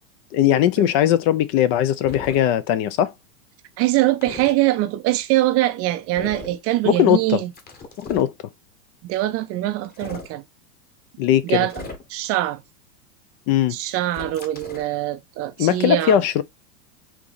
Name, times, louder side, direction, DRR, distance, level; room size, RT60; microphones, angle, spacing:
voice 1, 0.3-3.1 6.8-7.4 8.0-8.3 11.2-11.7 13.5-13.8 15.6-16.4, left 11 dB, 35° left, 0.5 m, -19 dB
sound 1, 2.0-2.4 4.2-4.5 6.2-6.6 7.5-8.3 9.8-10.3 11.7-12.3 14.1-14.9, left 3 dB, 20° left, 1.3 m, -37 dB
voice 2, 3.8-7.5 9.0-10.4 11.4-11.8 12.1-12.6 13.7-16.2, right 16 dB, 30° right, 0.5 m, -23 dB
4.6 x 2.8 x 4.0 m
hypercardioid pair, 100°, 46 cm